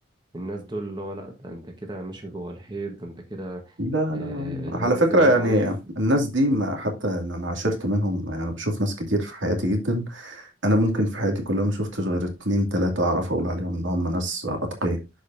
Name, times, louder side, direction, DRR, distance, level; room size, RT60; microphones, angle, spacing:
voice 1, 0.3-3.7 4.1-5.7, right 1 dB, 25° right, 1.3 m, -35 dB
voice 2, 3.8-15.0, equal, 85° right, 2.5 m, -24 dB
12.0 x 5.1 x 2.7 m
head